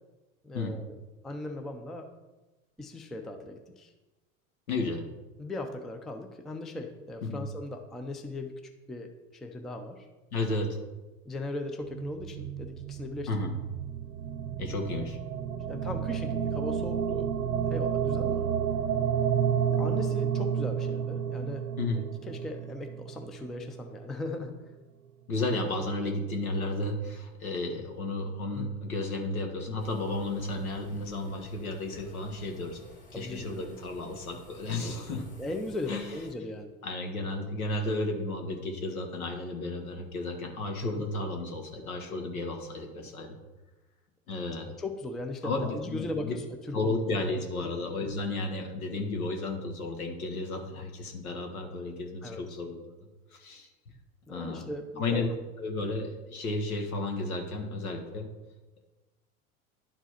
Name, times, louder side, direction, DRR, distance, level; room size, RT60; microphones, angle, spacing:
voice 1, 0.4-1.0 1.2-2.1 2.8-3.9 5.4-8.6 8.9-10.1 11.3-13.5 15.7-17.3 17.7-18.5 19.7-21.7 21.9-24.6 28.5-28.7 33.1-33.7 35.4-36.7 40.8-41.1 44.8-46.9 47.6-47.7 52.2-52.6 54.3-55.2, left 2 dB, ahead, 6 dB, 0.3 m, -38 dB
voice 2, 4.7-5.0 7.2-7.4 10.3-10.8 13.3-13.5 14.6-15.2 21.8-22.0 25.3-32.8 33.1-35.2 35.9-36.0 36.8-43.4 44.3-44.7 45.4-46.3 46.7-52.9 53.3-53.7 54.3-54.7 55.0-55.3 55.6-58.3, left 2 dB, 75° left, 3 dB, 1.7 m, -33 dB
sound 1, 11.8-24.1, right 8 dB, 85° right, 0.6 m, -31 dB
sound 2, 29.8-36.3, left 1 dB, 20° left, 2.1 m, -52 dB
11.0 x 4.5 x 4.3 m, 1.1 s
hypercardioid pair, 85°, 43 cm